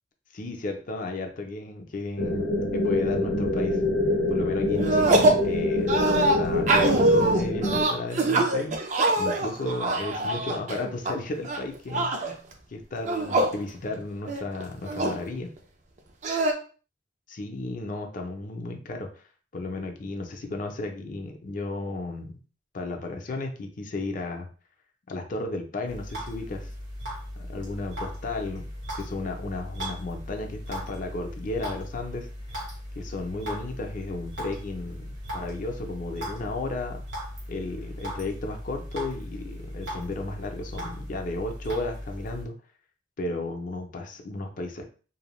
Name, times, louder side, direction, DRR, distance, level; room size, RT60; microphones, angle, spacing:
voice 1, 0.3-3.8 4.3-8.8 9.2-12.1 12.7-15.5 17.3-19.1 19.5-22.4 22.7-24.5 25.1-26.7 27.4-28.7 28.9-32.3 33.0-37.0 37.5-42.5 43.2-44.8, left 2 dB, 45° left, 3 dB, 0.5 m, -34 dB
sound 1, 2.2-7.8, left 2 dB, 90° left, 0.6 m, -26 dB
sound 2, 4.8-5.5 5.9-11.1 11.4-12.3 13.0-13.6 13.9-14.0 14.3-15.2 16.2-16.5, right 2 dB, 40° right, 0.4 m, -23 dB
sound 3, 25.9-42.4, equal, 85° right, 1.2 m, -38 dB
2.6 x 2.1 x 3.0 m, 0.38 s
head